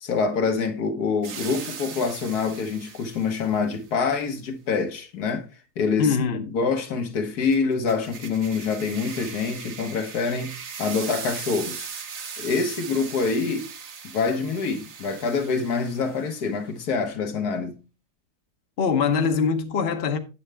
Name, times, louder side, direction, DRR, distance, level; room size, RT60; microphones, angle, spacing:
voice 1, 0.0-5.5 5.8-6.2 6.5-11.9 12.4-13.7 14.1-17.8, left 5 dB, 70° left, 1.6 m, -26 dB
sound 1, 1.2-3.6 7.5-16.4, right 6 dB, 50° right, 1.1 m, -39 dB
voice 2, 6.0-6.6 18.8-20.2, left 6 dB, 45° left, 1.0 m, -23 dB
8.7 x 7.7 x 3.3 m
omnidirectional pair, 1.7 m